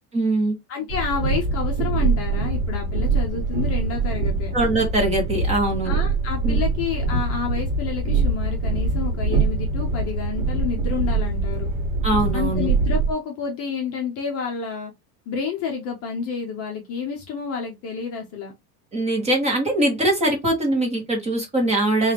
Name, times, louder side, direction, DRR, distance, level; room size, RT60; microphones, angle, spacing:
voice 1, 0.1-0.5 4.5-5.9 6.4-6.6 12.0-12.7 18.9-22.1, right 1 dB, 15° right, 1.0 m, -22 dB
voice 2, 0.7-4.5 5.8-11.7 12.3-14.9 15.3-18.5, left 6 dB, 30° left, 0.7 m, -29 dB
Train, 0.9-13.1, right 3 dB, 65° right, 1.2 m, -23 dB
4.4 x 2.5 x 3.3 m
cardioid pair, 175°, 45 cm